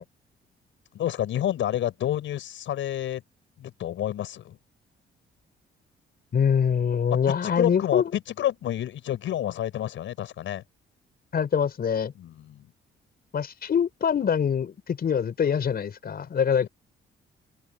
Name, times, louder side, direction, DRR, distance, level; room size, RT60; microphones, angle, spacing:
voice 1, 0.9-3.2 3.6-4.6 7.4-10.6 12.2-12.7 16.6-16.7, left 11 dB, 75° left, 6.8 m, -29 dB
voice 2, 6.3-8.0 11.3-12.1 13.3-16.7, left 7 dB, 50° left, 5.6 m, -24 dB
cardioid pair, 90°, 20 cm